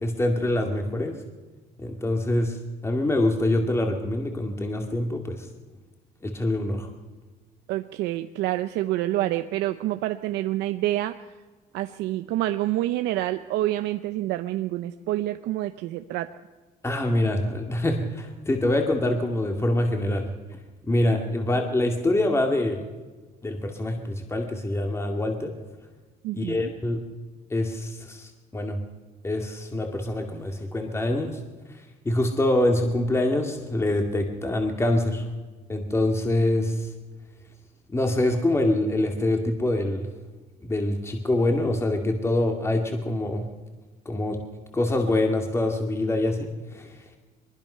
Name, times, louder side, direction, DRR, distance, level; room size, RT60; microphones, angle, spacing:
voice 1, 0.0-1.2 1.8-2.6 2.8-5.5 6.2-6.9 16.8-20.3 20.9-22.9 23.4-25.5 26.3-27.0 27.5-28.8 29.2-31.4 32.1-35.2 35.7-36.9 37.9-40.1 40.6-43.5 44.1-44.4 44.7-47.0, left 1 dB, 15° left, 3 dB, 2.2 m, -25 dB
voice 2, 7.7-11.2 11.7-16.3 26.2-26.7, right 15 dB, 90° right, 9 dB, 0.7 m, -27 dB
23.0 x 21.5 x 5.6 m, 1.3 s
cardioid pair, 110°, 17 cm